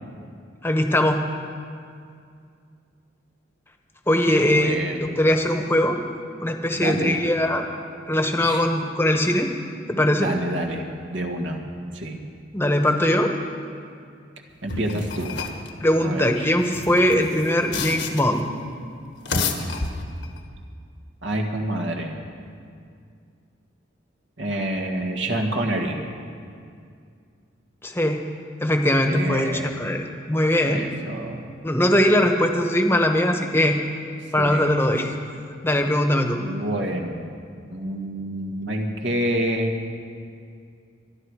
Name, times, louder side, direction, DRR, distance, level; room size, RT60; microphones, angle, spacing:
voice 1, 0.6-1.2 4.1-4.8 5.2-6.0 6.4-7.7 8.1-9.5 9.9-10.3 12.5-13.3 15.8-18.4 27.8-28.2 28.6-30.8 31.6-33.8 34.3-35.1 35.6-36.4, left 1 dB, 10° left, 4 dB, 1.1 m, -21 dB
voice 2, 4.3-5.2 6.8-7.2 8.4-8.6 10.1-11.7 11.9-12.2 14.6-15.4 16.0-16.5 21.2-22.2 24.4-26.0 29.1-29.7 30.6-31.5 34.4-34.7 36.3-37.3 37.7-39.8, right 1 dB, 75° right, 3 dB, 1.8 m, -28 dB
sound 1, 14.7-15.7 16.6-18.4 19.1-20.4, left 4 dB, 75° left, 1.4 m, -30 dB
24.5 x 11.0 x 4.9 m, 2.3 s
head